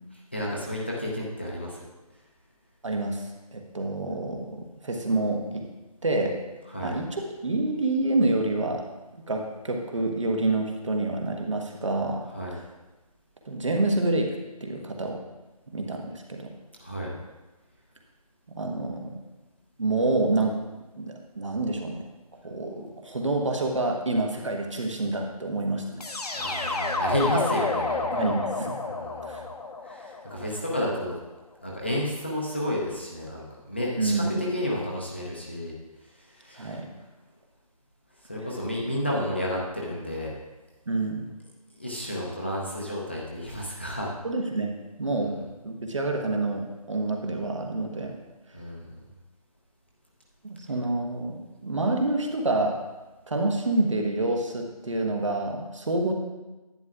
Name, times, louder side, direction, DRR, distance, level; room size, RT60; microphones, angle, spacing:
voice 1, 0.3-1.8 6.7-7.0 12.3-12.5 16.8-17.1 26.3-28.3 28.8-29.4 29.8-31.1 31.6-35.7 36.3-36.8 38.2-40.3 41.8-44.1 48.5-48.9, left 1 dB, 20° left, -4 dB, 0.6 m, -31 dB
voice 2, 2.8-5.7 6.0-6.3 6.8-8.8 9.3-12.2 12.5-12.6 13.4-14.3 14.6-15.2 15.7-16.5 18.5-19.1 19.8-20.6 21.0-22.0 22.4-25.8 28.1-28.9 29.2-29.4 34.0-34.3 36.6-36.9 40.9-41.2 44.2-45.4 45.6-48.1 50.4-52.7 53.3-56.1, right 2 dB, 55° right, 2 dB, 1.2 m, -27 dB
sound 1, 26.0-30.9, left 3 dB, 85° left, 1.0 m, -30 dB
10.5 x 9.4 x 2.4 m, 1.1 s
figure-of-eight pair, 175°, 19 cm